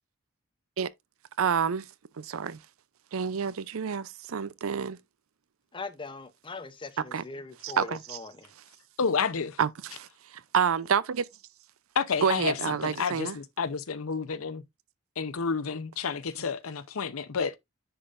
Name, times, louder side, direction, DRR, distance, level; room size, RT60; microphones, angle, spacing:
voice 1, 1.4-1.9 2.2-2.6 3.1-5.0 7.1-7.2 7.6-8.2 9.6-11.3 12.2-13.4, right 6 dB, 80° right, 0.5 m, -28 dB
voice 2, 5.7-8.5, left 3 dB, 25° left, 0.7 m, -41 dB
voice 3, 9.0-9.6 11.9-14.6 15.2-17.6, left 5 dB, 85° left, 0.7 m, -30 dB
10.0 x 3.8 x 2.5 m
head